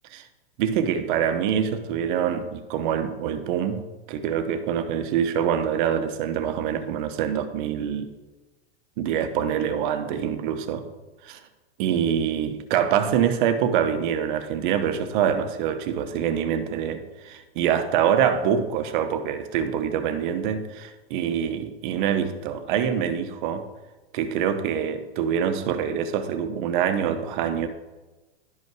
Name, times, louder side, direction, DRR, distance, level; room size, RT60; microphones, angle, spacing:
voice 1, 0.6-3.8 4.1-8.1 9.0-10.8 11.2-11.4 11.8-23.7 24.1-27.7, right 8 dB, 50° right, 9 dB, 1.1 m, -25 dB
11.5 x 5.5 x 4.7 m, 1.2 s
hypercardioid pair, 130°, 31 cm